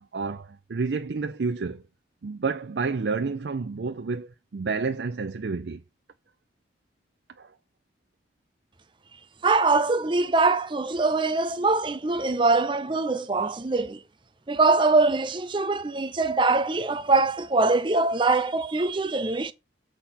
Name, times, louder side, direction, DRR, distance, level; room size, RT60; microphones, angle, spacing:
voice 1, 0.0-1.8 2.2-5.8 7.4-7.5, right 4 dB, 75° right, 0.5 m, -30 dB
voice 2, 9.4-14.0 14.5-19.5, right 3 dB, 30° right, 0.6 m, -23 dB
7.8 x 4.3 x 5.6 m
head